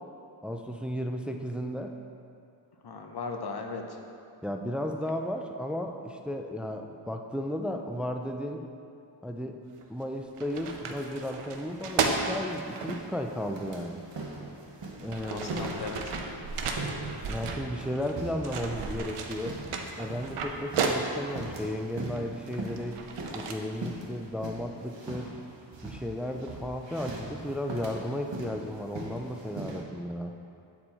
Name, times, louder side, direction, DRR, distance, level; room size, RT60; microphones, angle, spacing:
voice 1, 0.4-1.9 4.4-8.6 9.2-9.6 9.9-14.0 15.0-15.5 17.3-19.6 20.0-23.0 23.3-25.3 25.8-30.3, equal, ahead, 4 dB, 0.4 m, -34 dB
voice 2, 2.8-4.0 15.0-16.2, left 4 dB, 50° left, 3 dB, 0.8 m, -38 dB
sound 1, 9.8-10.0 10.4-13.0 14.1-14.2 14.8-18.1 18.4-21.4 22.1-23.5, right 5 dB, 90° right, 0.7 m, -34 dB
sound 2, 11.7-29.8, right 2 dB, 60° right, 1.1 m, -41 dB
8.2 x 4.4 x 4.3 m, 2.5 s
cardioid pair, 65°, 49 cm